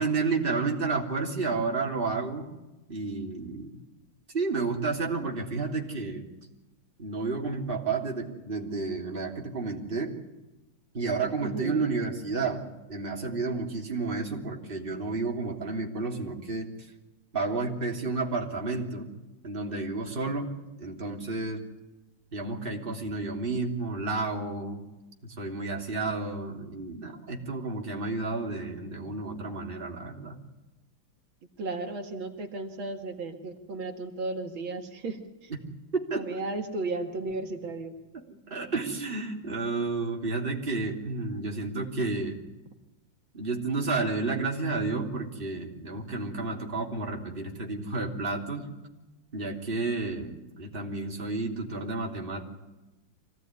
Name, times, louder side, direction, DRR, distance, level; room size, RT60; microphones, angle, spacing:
voice 1, 0.0-2.5 2.9-3.8 4.3-6.2 7.0-10.1 10.9-16.7 17.3-19.1 19.4-20.5 20.8-21.6 22.3-24.8 25.2-30.4 35.5-35.6 35.9-36.2 38.3-42.4 43.3-48.7 49.3-52.4, right 3 dB, 25° right, 1 dB, 3.4 m, -31 dB
voice 2, 11.4-11.9 31.6-35.2 36.2-37.9, right 3 dB, 75° right, 4 dB, 2.7 m, -34 dB
25.5 x 17.5 x 9.7 m, 1.0 s
omnidirectional pair, 2.2 m